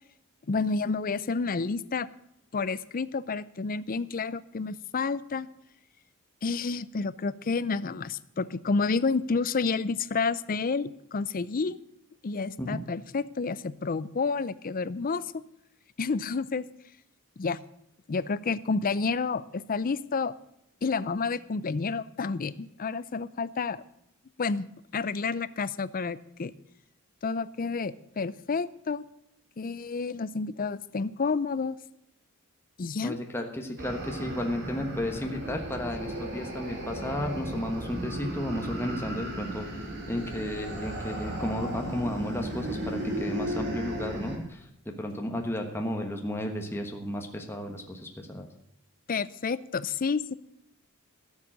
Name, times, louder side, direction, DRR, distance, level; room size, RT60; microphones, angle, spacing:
voice 1, 0.5-2.1 2.5-5.5 6.4-11.8 12.2-15.4 16.0-16.6 17.4-17.6 18.1-20.3 20.8-23.8 24.4-24.7 24.9-26.5 27.2-29.1 29.6-31.8 32.8-33.2 49.1-50.2, left 4 dB, 40° left, 17 dB, 0.5 m, -30 dB
voice 2, 33.0-39.7 40.1-48.5, left 1 dB, 10° left, 3 dB, 1.2 m, -33 dB
sound 1, 33.8-44.4, right 1 dB, 55° right, 3.2 m, -35 dB
13.0 x 7.3 x 8.6 m, 0.78 s
head